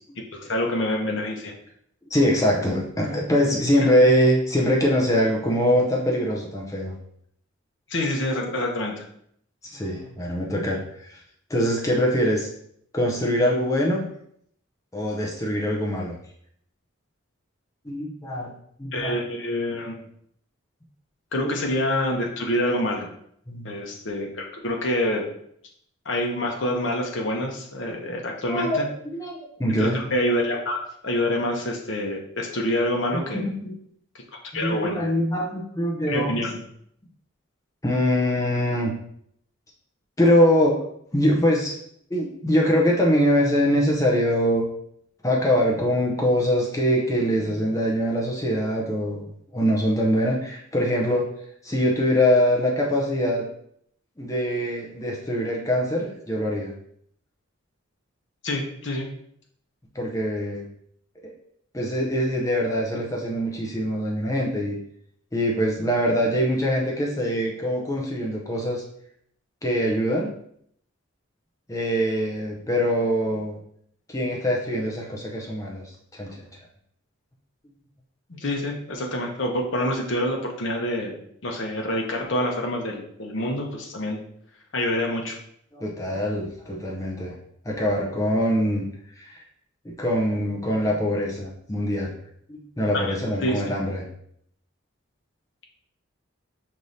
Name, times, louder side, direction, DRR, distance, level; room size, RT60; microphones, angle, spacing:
voice 1, 0.3-1.5 7.9-9.1 18.9-19.9 21.3-23.1 23.6-25.2 26.0-28.9 29.8-33.5 34.5-35.0 36.1-36.6 58.4-59.1 78.3-81.1 81.4-84.2 84.7-85.4 92.9-93.2 93.4-93.7, left 1 dB, 60° left, 0 dB, 0.8 m, -26 dB
voice 2, 2.1-7.0 9.7-11.2 11.5-12.5 12.9-14.1 14.9-16.2 17.8-18.5 18.8-19.2 21.4-21.5 23.5-23.7 28.5-30.0 33.1-33.8 34.5-36.3 37.8-38.9 40.2-40.8 41.1-41.8 42.1-44.7 45.2-51.3 51.6-53.4 54.2-56.7 59.9-60.7 61.2-61.3 61.7-64.8 65.3-68.8 69.6-70.3 71.7-73.6 74.1-75.8 76.1-76.4 85.7-87.3 87.6-88.9 89.2-89.4 89.8-92.1 92.5-94.1, equal, 15° left, -2 dB, 0.6 m, -23 dB
5.4 x 3.1 x 2.6 m, 0.68 s
head